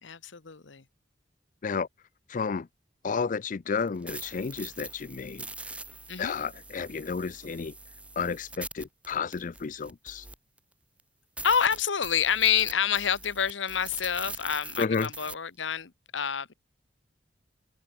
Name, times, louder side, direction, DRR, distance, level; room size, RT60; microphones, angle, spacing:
voice 1, 0.0-0.8 6.1-6.4 11.4-16.5, left 8 dB, 80° left, 1.1 m, -28 dB
voice 2, 2.3-2.6 3.0-5.4 6.2-7.7 8.2-10.2 14.8-15.1, left 5 dB, 45° left, 0.4 m, -31 dB
sound 1, 3.8-10.6 11.0-11.1 11.4-15.3, right 2 dB, 5° right, 2.1 m, -43 dB
head